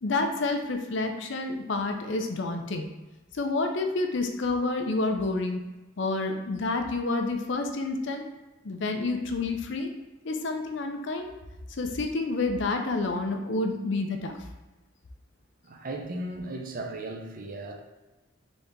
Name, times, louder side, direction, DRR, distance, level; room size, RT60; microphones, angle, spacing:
voice 1, 0.0-2.9 3.3-5.6 6.0-8.3 8.6-9.9 10.2-11.3 11.7-14.4, left 3 dB, 60° left, 5 dB, 0.5 m, -29 dB
voice 2, 15.6-17.7, right 2 dB, 45° right, 2 dB, 0.6 m, -36 dB
4.1 x 3.4 x 3.7 m, 1.1 s
head